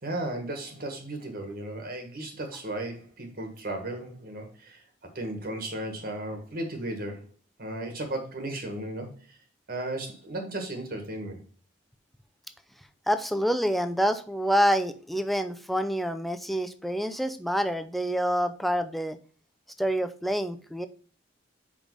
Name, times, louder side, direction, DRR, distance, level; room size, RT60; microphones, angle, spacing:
voice 1, 0.0-4.8 5.1-7.3 7.6-9.4 9.7-11.4, right 1 dB, 50° right, 1.6 m, -35 dB
voice 2, 13.1-19.2 19.8-20.9, equal, ahead, 0.5 m, -27 dB
5.2 x 5.2 x 5.4 m
head